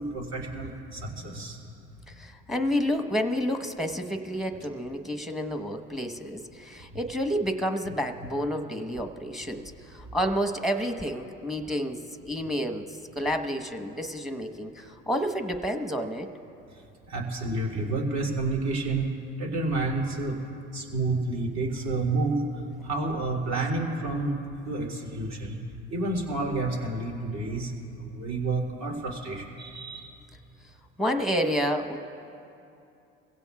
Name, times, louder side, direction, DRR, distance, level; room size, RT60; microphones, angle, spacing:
voice 1, 0.0-1.6 17.1-19.1 19.4-20.4 20.7-22.4 22.8-24.4 24.7-25.6 25.9-27.7 28.0-30.1, right 2 dB, 60° right, -1 dB, 3.1 m, -29 dB
voice 2, 2.1-16.3 31.0-32.0, equal, ahead, 6 dB, 1.1 m, -30 dB
24.5 x 16.5 x 2.4 m, 2.7 s
supercardioid pair, 90°, 31 cm